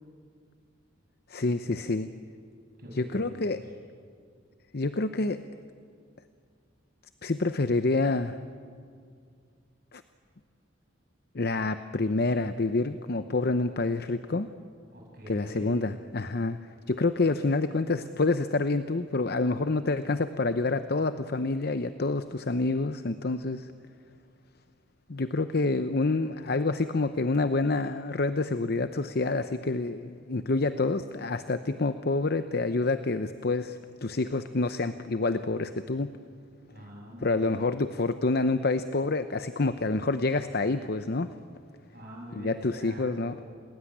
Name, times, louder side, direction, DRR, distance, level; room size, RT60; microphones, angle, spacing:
voice 1, 1.3-2.1 2.9-3.6 4.7-5.4 7.2-8.4 9.9-10.0 11.3-14.5 15.3-16.6 16.9-23.7 25.1-36.1 37.2-41.3 42.3-43.3, left 3 dB, 50° left, 10 dB, 0.7 m, -27 dB
voice 2, 2.8-3.6 8.9-9.1 14.9-15.8 36.7-37.8 41.9-43.4, equal, 50° right, -2 dB, 7.3 m, -45 dB
28.5 x 19.5 x 9.9 m, 2.2 s
head